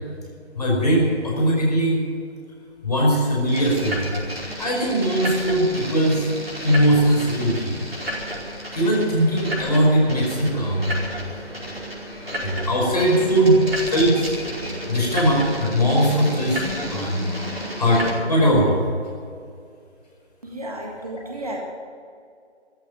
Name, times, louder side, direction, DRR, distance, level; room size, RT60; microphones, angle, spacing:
voice 1, 0.5-2.0 2.8-4.0 4.6-6.3 6.6-7.7 8.7-10.9 12.4-13.6 13.9-14.3 14.9-16.6 16.9-17.1 17.8-18.8, equal, 35° left, -2 dB, 5.1 m, -20 dB
sound 1, 3.5-18.1, equal, 55° right, 5.0 m, -32 dB
voice 2, 13.2-13.6 20.4-21.6, right 1 dB, 30° right, 0 dB, 1.9 m, -33 dB
14.5 x 10.0 x 9.4 m, 2.3 s
figure-of-eight pair, 160°, 34 cm